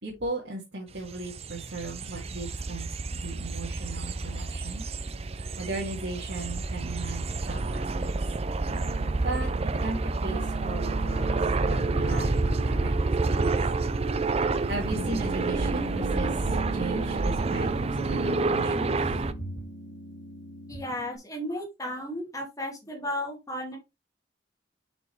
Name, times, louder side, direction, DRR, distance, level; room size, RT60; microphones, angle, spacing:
voice 1, 0.0-4.8 5.6-8.1 9.2-9.5 9.8-13.6 14.7-17.7 18.0-19.5, right 2 dB, 65° right, -4 dB, 2.2 m, -37 dB
sound 1, 1.0-19.3, right 3 dB, 35° right, 0.5 m, -29 dB
Piano, 8.7-21.2, right 2 dB, 85° left, 1.3 m, -39 dB
voice 2, 20.7-23.8, left 1 dB, 20° left, 1 dB, 2.1 m, -34 dB
7.0 x 5.3 x 3.3 m, 0.23 s
head